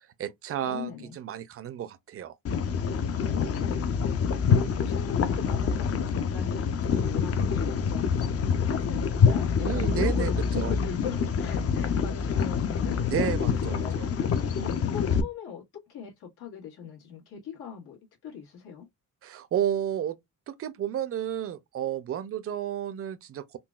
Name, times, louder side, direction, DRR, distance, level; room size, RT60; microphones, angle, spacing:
voice 1, 0.0-2.3 4.5-4.7 9.6-10.7 13.1-14.1 19.2-20.2 20.5-23.6, right 10 dB, 40° right, 0.4 m, -32 dB
voice 2, 0.6-1.1 3.1-13.0 13.4-14.0 14.6-18.9, left 7 dB, 90° left, 1.6 m, -40 dB
sound 1, 2.4-15.2, left 6 dB, 40° left, 0.5 m, -26 dB
3.8 x 2.2 x 2.3 m
cardioid pair, 135°, 38 cm